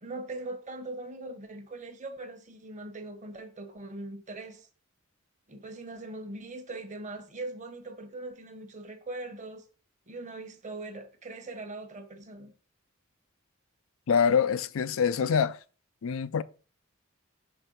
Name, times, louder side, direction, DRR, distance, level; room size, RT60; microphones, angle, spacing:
voice 1, 0.0-4.7 5.5-9.6 10.1-12.5, right 2 dB, 35° right, 1.0 m, -41 dB
voice 2, 14.1-15.6 16.0-16.4, left 6 dB, 75° left, 0.4 m, -25 dB
6.0 x 3.2 x 5.3 m
head